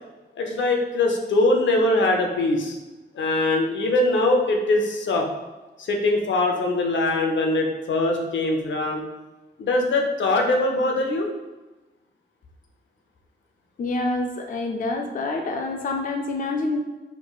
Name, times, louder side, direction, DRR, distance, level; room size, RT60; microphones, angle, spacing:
voice 1, 0.4-2.8 3.1-5.3 5.8-9.0 9.6-11.3, left 2 dB, 90° left, 1 dB, 0.6 m, -22 dB
voice 2, 13.8-16.8, left 2 dB, 50° left, 2 dB, 0.4 m, -27 dB
4.4 x 3.0 x 2.3 m, 1.2 s
wide cardioid pair, 145°, 19 cm